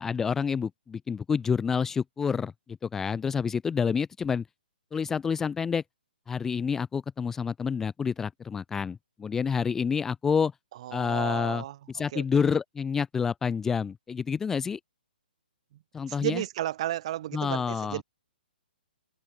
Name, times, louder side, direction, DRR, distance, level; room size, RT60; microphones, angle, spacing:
voice 1, 0.0-4.4 4.9-5.8 6.3-10.5 10.9-11.6 11.9-14.8 15.9-16.4 17.3-18.0, left 6 dB, 5° left, 0.6 m, -28 dB
voice 2, 10.8-11.8 12.1-12.4 15.7-15.8 16.1-18.0, right 13 dB, 35° right, 0.9 m, -33 dB
hypercardioid pair, 165°, 6 cm